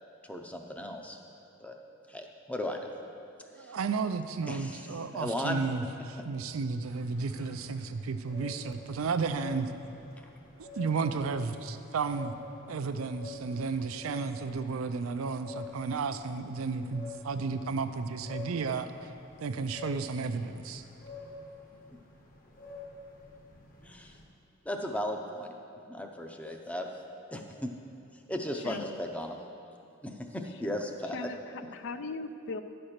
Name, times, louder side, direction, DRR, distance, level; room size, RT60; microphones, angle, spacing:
voice 1, 0.3-1.2 1.6-1.8 2.1-2.9 3.6-3.8 4.5-4.8 5.1-5.6 23.8-24.2 24.6-25.5 25.9-26.9 27.3-27.7 28.3-29.4 30.0-31.2 31.6-31.7, left 1 dB, 5° left, 3 dB, 0.6 m, -36 dB
voice 2, 3.5-9.7 10.6-12.3 12.7-19.1 19.4-20.8, right 4 dB, 85° right, 9 dB, 0.5 m, -33 dB
sound 1, 6.8-24.2, left 3 dB, 45° left, 1.1 m, -48 dB
voice 3, 28.6-28.9 31.1-32.6, left 3 dB, 65° left, 10 dB, 0.4 m, -38 dB
10.5 x 4.4 x 6.5 m, 2.8 s
head